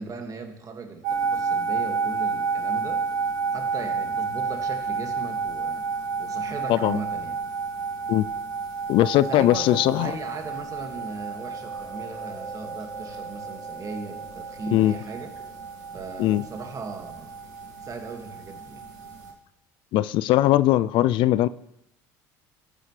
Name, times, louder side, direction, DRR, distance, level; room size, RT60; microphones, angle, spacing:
voice 1, 0.0-3.0 3.5-7.4 9.1-15.3 15.9-17.3 17.8-18.8, right 4 dB, 40° right, 2.0 m, -37 dB
sound 1, 1.0-19.3, right 5 dB, 90° right, 2.2 m, -31 dB
Chewing mastication, 8.6-17.6, right 1 dB, ahead, 4.8 m, -48 dB
voice 2, 8.9-10.1 14.7-14.9 16.2-16.4 19.9-21.5, left 14 dB, 65° left, 0.4 m, -20 dB
13.5 x 9.8 x 3.3 m
hypercardioid pair, 75°, 9 cm